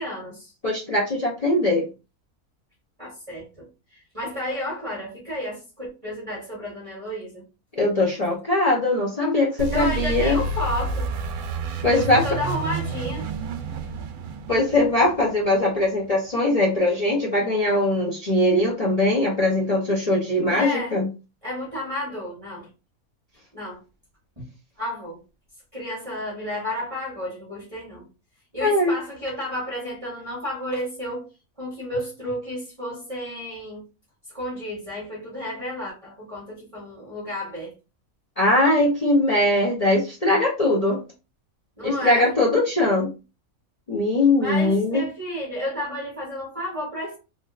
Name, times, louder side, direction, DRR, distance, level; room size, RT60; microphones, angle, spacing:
voice 1, 0.0-0.5 3.0-7.4 9.7-11.1 11.9-13.3 20.4-21.0 21.4-22.7 23.5-23.8 24.4-24.5 24.8-25.2 25.7-28.1 28.5-31.3 31.6-33.8 34.3-37.7 41.8-42.3 44.4-47.2, left 1 dB, 25° right, 1.2 m, -32 dB
voice 2, 0.6-1.9 7.8-10.4 11.8-12.2 14.5-21.1 28.6-28.9 38.4-41.0 41.8-43.1 43.9-45.0, left 2 dB, 40° left, 0.6 m, -21 dB
sound 1, 9.6-16.2, right 4 dB, 90° right, 1.1 m, -30 dB
3.4 x 2.6 x 2.4 m
omnidirectional pair, 1.6 m